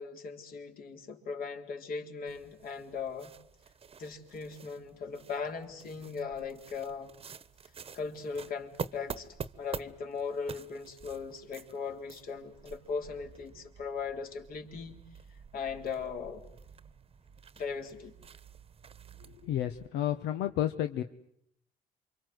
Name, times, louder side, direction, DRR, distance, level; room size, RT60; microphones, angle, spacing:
voice 1, 0.0-3.3 4.0-7.1 7.9-9.3 9.6-15.0 15.5-16.4 17.6-18.1, left 5 dB, 60° left, 4 dB, 4.0 m, -38 dB
sound 1, 2.3-19.9, right 6 dB, 35° right, 1.2 m, -48 dB
voice 2, 19.2-21.0, left 11 dB, 85° left, 8 dB, 1.2 m, -31 dB
28.5 x 25.5 x 8.0 m, 0.70 s
cardioid pair, 110°, 17 cm